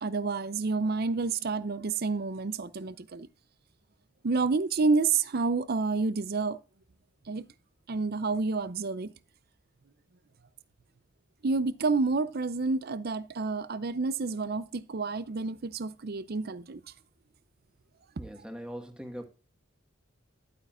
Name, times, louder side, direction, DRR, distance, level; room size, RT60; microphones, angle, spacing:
voice 1, 0.0-3.3 4.2-6.6 7.3-7.5 7.9-9.1 11.4-16.8, right 4 dB, 50° right, 0.5 m, -29 dB
voice 2, 18.2-19.3, equal, 5° right, 1.5 m, -41 dB
11.5 x 8.6 x 2.4 m
head